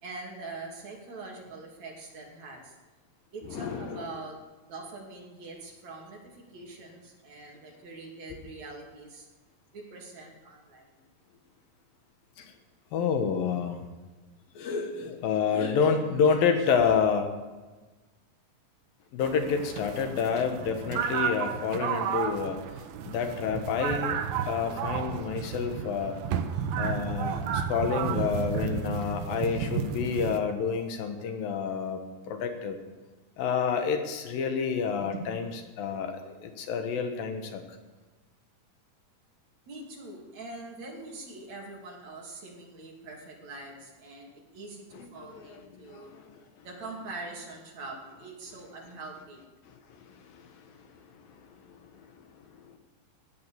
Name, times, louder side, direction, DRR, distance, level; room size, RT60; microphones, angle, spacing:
voice 1, 0.0-2.7 3.3-4.4 4.6-9.3 9.7-11.0 35.0-35.3 39.7-46.1 46.6-49.4, right 3 dB, 50° right, -1 dB, 3.8 m, -43 dB
voice 2, 3.4-4.0 12.4-12.5 12.9-13.9 14.5-17.2 19.1-22.6 23.0-26.2 26.6-32.0 32.3-32.8 33.4-35.5 35.8-37.6 44.9-46.4 49.9-52.8, left 6 dB, 75° left, 6 dB, 3.1 m, -29 dB
sound 1, 19.2-30.4, right 7 dB, 80° right, 2.7 m, -32 dB
16.0 x 10.5 x 7.0 m, 1.2 s
omnidirectional pair, 4.1 m